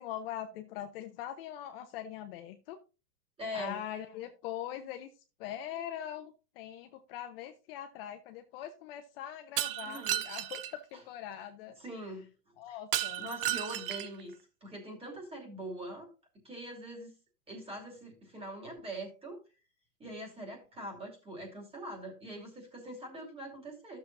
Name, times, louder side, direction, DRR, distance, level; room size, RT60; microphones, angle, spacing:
voice 1, 0.0-2.8 3.5-5.1 5.4-11.8 12.6-13.3, left 10 dB, 40° left, 6 dB, 0.7 m, -42 dB
voice 2, 3.4-3.8 9.8-10.2 11.8-12.3 12.7-12.8 13.2-16.1 16.4-17.1 17.5-19.4 20.0-24.0, right 1 dB, 10° right, 0 dB, 2.6 m, -43 dB
Shatter, 9.6-10.7 12.9-14.2, right 13 dB, 40° right, 0.5 m, -33 dB
13.0 x 6.9 x 2.7 m, 0.32 s
hypercardioid pair, 135°, 47 cm